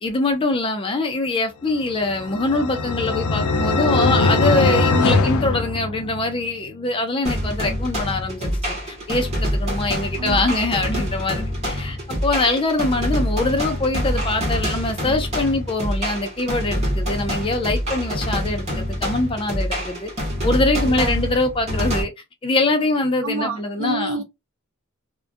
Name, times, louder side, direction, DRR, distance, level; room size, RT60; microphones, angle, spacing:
voice 1, 0.0-12.0 12.2-20.1 20.4-22.1 22.4-24.2, left 2 dB, 25° left, 0.4 m, -23 dB
sound 1, 1.9-6.5, left 3 dB, 85° left, 0.5 m, -21 dB
sound 2, 7.3-22.0, equal, 30° right, 1.0 m, -25 dB
voice 2, 10.2-10.5 20.8-21.3 23.2-24.2, right 3 dB, 60° right, 0.6 m, -29 dB
2.4 x 2.2 x 2.5 m
head